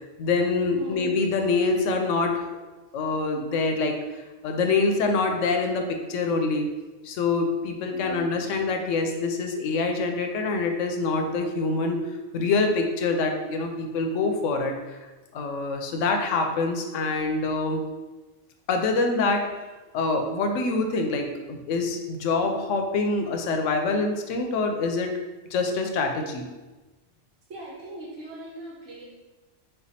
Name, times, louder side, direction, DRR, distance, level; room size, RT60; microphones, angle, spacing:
voice 1, 0.2-2.5 2.9-4.0 4.4-6.7 7.0-12.0 12.3-15.0 15.3-17.9 18.7-19.5 19.9-25.2 25.5-26.5, left 3 dB, 90° left, 4 dB, 0.9 m, -25 dB
voice 2, 0.8-1.1 7.9-8.3 27.5-29.1, right 1 dB, 80° right, -4 dB, 1.3 m, -40 dB
4.4 x 2.3 x 4.1 m, 1.2 s
omnidirectional pair, 1.2 m